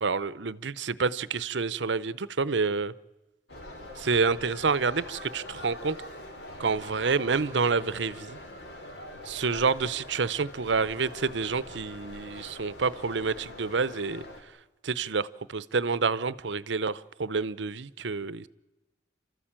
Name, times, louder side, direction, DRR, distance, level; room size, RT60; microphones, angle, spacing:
voice 1, 0.0-2.9 4.0-6.0 6.6-8.4 9.2-14.2 14.8-18.5, right 4 dB, 80° right, 17 dB, 0.7 m, -28 dB
sound 1, 3.5-14.4, left 1 dB, 70° left, 3.4 m, -43 dB
29.5 x 13.5 x 8.9 m, 1.1 s
head